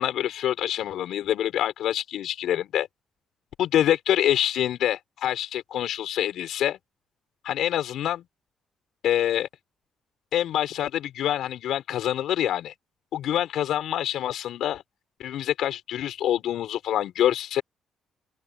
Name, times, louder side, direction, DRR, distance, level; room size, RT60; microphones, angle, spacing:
voice 1, 0.0-2.9 3.6-6.8 7.4-8.2 9.0-9.5 10.3-12.7 13.1-14.8 15.2-17.6, left 11 dB, 75° left, 5.8 m, -26 dB
open air
cardioid pair, 90°, 0 cm